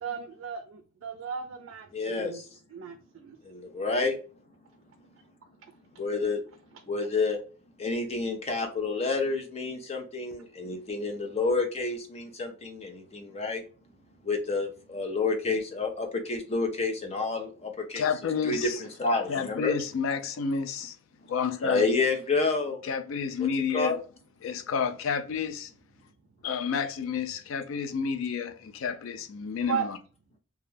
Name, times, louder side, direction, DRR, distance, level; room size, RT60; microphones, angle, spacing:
voice 1, 0.0-2.4 2.7-3.4 29.7-29.9, right 7 dB, 85° right, 0.3 m, -35 dB
voice 2, 1.9-2.4 3.4-4.2 6.0-6.4 6.9-7.4 7.8-13.6 14.2-18.0 18.4-18.7 19.0-19.7 21.6-22.8 23.7-24.0, left 3 dB, 30° left, 0.5 m, -29 dB
voice 3, 17.9-18.8 19.3-21.0 21.3-21.9 22.8-24.0 24.4-25.7 26.4-30.0, left 6 dB, 90° left, 0.4 m, -30 dB
2.3 x 2.1 x 3.2 m
head